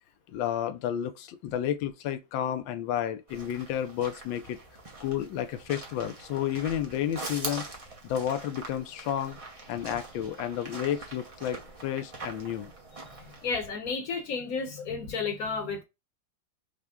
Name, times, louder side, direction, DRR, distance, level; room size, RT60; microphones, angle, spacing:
voice 1, 0.3-4.6 5.0-7.7 8.0-9.4 9.7-12.7, left 10 dB, 85° left, 1.4 m, -31 dB
sound 1, 3.3-13.7, right 2 dB, 30° right, 0.6 m, -43 dB
voice 2, 13.2-15.8, left 4 dB, 55° left, 1.2 m, -32 dB
5.8 x 2.2 x 3.6 m
omnidirectional pair, 2.0 m